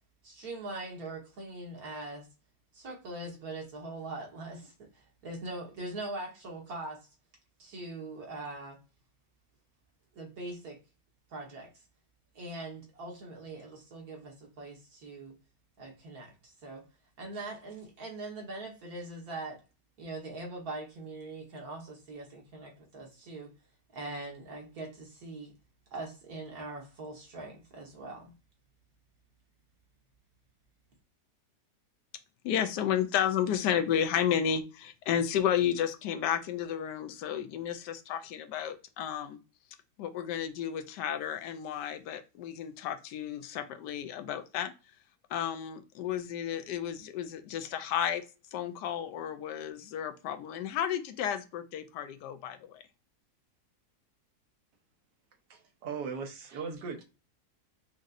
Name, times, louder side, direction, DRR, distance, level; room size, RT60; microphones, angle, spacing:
voice 1, 0.2-2.3 2.7-7.1 7.6-8.8 10.1-10.8 11.3-11.7 12.3-15.3 15.8-16.8 17.2-19.6 20.0-23.5 23.9-25.5 25.9-28.3, right 2 dB, 65° right, 1.8 m, -42 dB
voice 2, 32.4-39.4 40.0-44.7 45.3-48.2 48.5-52.8, left 9 dB, 85° left, 1.2 m, -32 dB
voice 3, 55.5-57.0, right 5 dB, 85° right, 1.4 m, -38 dB
5.1 x 2.7 x 2.5 m
omnidirectional pair, 1.8 m